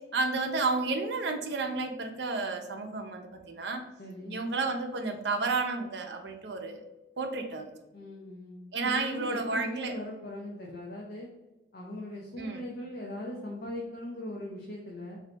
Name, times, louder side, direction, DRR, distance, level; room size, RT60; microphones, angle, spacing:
voice 1, 0.1-3.8 4.3-6.9 7.2-7.7 8.7-10.0 12.4-12.7, right 3 dB, 65° right, 5 dB, 0.5 m, -31 dB
voice 2, 4.0-4.4 7.9-11.3 11.7-15.2, left 1 dB, 50° left, -2 dB, 0.6 m, -39 dB
3.9 x 2.7 x 3.3 m, 1.0 s
head